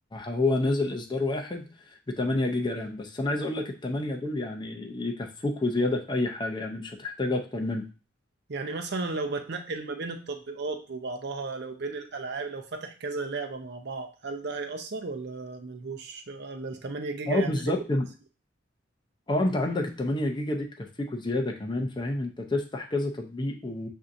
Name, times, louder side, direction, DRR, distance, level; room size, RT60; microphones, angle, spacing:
voice 1, 0.1-1.6 2.2-7.8 17.3-18.1 19.3-23.9, left 2 dB, 25° left, 2 dB, 0.5 m, -28 dB
voice 2, 8.5-17.5, right 3 dB, 60° right, 6 dB, 0.6 m, -34 dB
6.9 x 2.7 x 2.5 m, 0.35 s
head